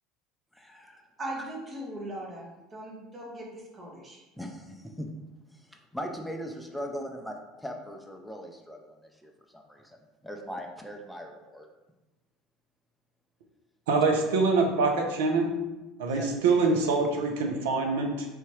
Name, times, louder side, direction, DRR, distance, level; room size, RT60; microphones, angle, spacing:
voice 1, 0.5-1.0 4.4-5.1 5.5-10.0 10.2-11.7 16.1-16.3, equal, ahead, 2 dB, 0.5 m, -40 dB
voice 2, 1.2-4.2, right 1 dB, 30° right, -3 dB, 1.2 m, -39 dB
voice 3, 13.9-15.5 16.0-18.3, right 3 dB, 75° right, 2 dB, 0.6 m, -25 dB
3.5 x 2.8 x 3.1 m, 1.0 s
hypercardioid pair, 70°, 0 cm